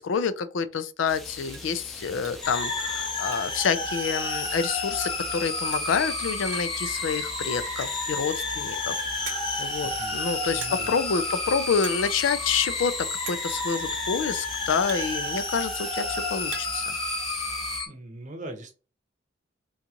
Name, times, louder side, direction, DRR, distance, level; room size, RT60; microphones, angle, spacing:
voice 1, 0.0-16.8, left 6 dB, 75° left, 0.4 m, -28 dB
sound 1, 0.6-0.7 1.1-1.2 1.5-1.8 2.2-2.5 2.9-3.7 4.0-4.1 4.3-4.4 5.4-5.5 5.7-6.0 6.5-6.8 7.6-8.1 8.7-8.8 9.3-9.7 10.6-11.0 11.3-11.5 11.8-12.1 12.4-12.5 13.3-13.6 14.4-15.7 16.1-16.9 17.2-17.9, right 6 dB, 80° right, 0.8 m, -42 dB
sound 2, 1.1-17.8, equal, ahead, 0.6 m, -43 dB
sound 3, 2.4-17.9, left 3 dB, 25° left, 0.9 m, -30 dB
voice 2, 9.8-10.2 10.5-10.9 17.9-18.7, right 1 dB, 40° right, 0.7 m, -41 dB
3.8 x 2.4 x 2.8 m
head